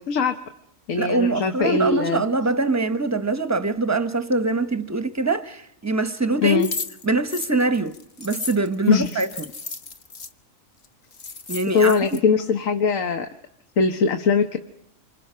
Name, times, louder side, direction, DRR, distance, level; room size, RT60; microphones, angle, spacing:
voice 1, 0.1-0.4 0.9-2.2 6.4-6.7 8.9-9.2 11.7-13.3 13.8-14.6, left 5 dB, 75° left, 1.5 m, -21 dB
voice 2, 1.0-6.7 7.0-9.5 11.5-12.2, right 3 dB, 15° right, 0.8 m, -24 dB
sound 1, 6.6-10.3 10.8-10.9 11.1-12.2, left 4 dB, 40° left, 1.1 m, -34 dB
27.5 x 25.0 x 5.6 m
omnidirectional pair, 1.4 m